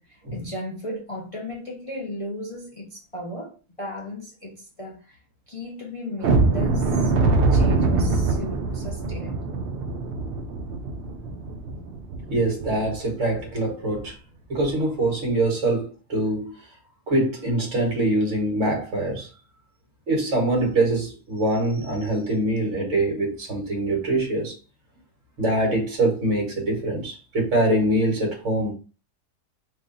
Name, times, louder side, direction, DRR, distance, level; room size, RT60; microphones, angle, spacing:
voice 1, 0.0-5.2 5.5-7.1 7.5-9.5, left 1 dB, 55° left, 0.3 m, -36 dB
sound 1, 6.2-12.9 13.3-13.5 13.9-14.0 14.5-14.7, right 3 dB, 80° right, 0.5 m, -23 dB
voice 2, 12.3-14.2 14.5-16.5 17.1-19.3 20.1-24.6 25.4-28.7, right 1 dB, 55° right, 1.7 m, -24 dB
3.2 x 2.5 x 3.9 m
omnidirectional pair, 1.6 m